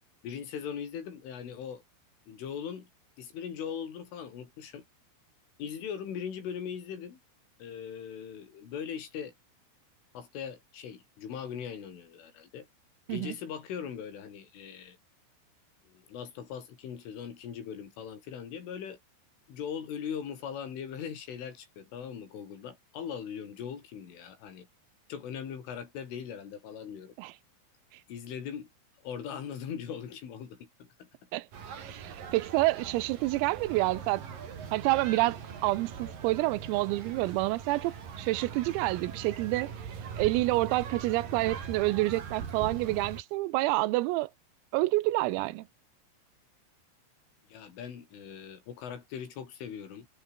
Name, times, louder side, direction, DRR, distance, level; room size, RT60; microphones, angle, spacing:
voice 1, 0.2-1.8 2.3-2.9 3.2-4.9 5.6-7.2 7.6-9.3 10.1-12.7 13.1-15.0 15.9-19.0 19.5-24.7 25.1-27.2 28.1-28.7 29.0-31.1 47.5-50.1, left 8 dB, 70° left, 6.4 m, -40 dB
sound 1, 31.5-43.2, right 7 dB, 45° right, 4.7 m, -41 dB
voice 2, 31.8-34.2 34.7-39.7 40.2-44.3 44.7-45.7, right 19 dB, 85° right, 3.7 m, -28 dB
omnidirectional pair, 6.0 m